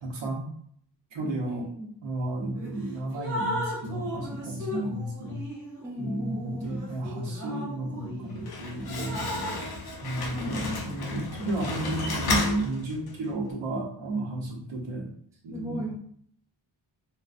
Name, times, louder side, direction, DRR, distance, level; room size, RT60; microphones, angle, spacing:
voice 1, 0.0-0.5 1.1-1.7 2.0-5.4 6.0-9.3 10.0-15.1 15.4-15.9, right 1 dB, 85° right, 0 dB, 0.9 m, -32 dB
voice 2, 1.4-1.9 5.8-6.5 10.3-10.8 15.5-15.9, equal, 10° right, -3 dB, 0.4 m, -36 dB
Drip, 2.5-2.8 3.1-8.5 8.9-9.6, equal, 45° right, 0.9 m, -36 dB
Slam, 8.2-13.3, left 3 dB, 55° left, 0.6 m, -33 dB
3.7 x 2.1 x 2.5 m, 0.62 s
wide cardioid pair, 155°, 45 cm